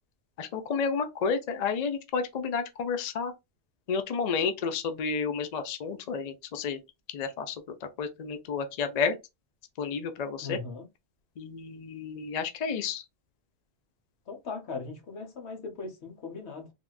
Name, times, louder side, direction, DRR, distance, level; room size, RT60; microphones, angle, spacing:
voice 1, 0.4-3.3 3.9-6.8 7.1-9.1 9.8-10.6 11.4-13.0, left 5 dB, 55° left, 0.5 m, -31 dB
voice 2, 10.4-10.8 14.3-16.7, left 4 dB, 70° left, 1.1 m, -39 dB
3.6 x 2.3 x 2.3 m
omnidirectional pair, 1.2 m